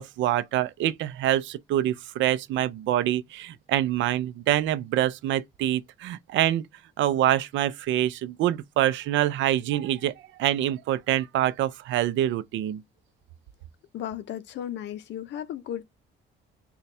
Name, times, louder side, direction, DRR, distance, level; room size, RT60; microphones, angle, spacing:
voice 1, 0.0-6.7 7.0-10.1 10.4-12.8, right 12 dB, 75° right, 0.4 m, -25 dB
voice 2, 13.9-15.8, left 10 dB, 65° left, 0.6 m, -35 dB
4.1 x 2.3 x 3.2 m
cardioid pair, 120°, 20 cm